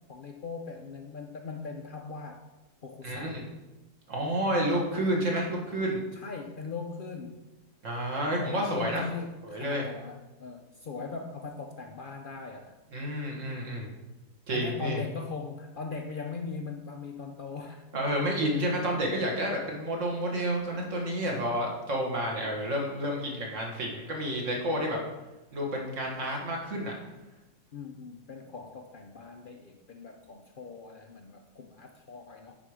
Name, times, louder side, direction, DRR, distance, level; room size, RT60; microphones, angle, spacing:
voice 1, 0.1-2.4 2.8-3.4 4.7-4.8 6.1-7.4 8.3-12.8 14.5-18.1 21.3-21.6 27.7-32.6, left 4 dB, 75° left, 3 dB, 0.4 m, -40 dB
voice 2, 3.0-3.4 4.1-6.0 7.8-9.0 9.4-9.8 12.9-13.9 14.5-15.0 17.9-25.0 25.5-26.9, equal, 50° right, 0 dB, 1.9 m, -30 dB
10.0 x 4.5 x 4.9 m, 1.1 s
omnidirectional pair, 1.7 m